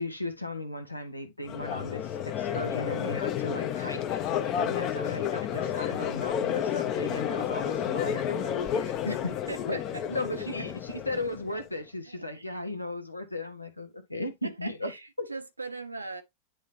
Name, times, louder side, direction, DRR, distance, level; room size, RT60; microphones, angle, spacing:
voice 1, 0.0-9.4 9.7-9.8 10.1-14.9 15.2-15.3, left 1 dB, 85° left, 1.4 m, -36 dB
Crowd, 1.5-11.6, left 9 dB, 35° left, 0.9 m, -31 dB
voice 2, 9.5-10.2 12.1-12.6 14.4-16.2, right 3 dB, 80° right, 0.9 m, -41 dB
10.0 x 3.7 x 2.8 m
figure-of-eight pair, 90°, 0 cm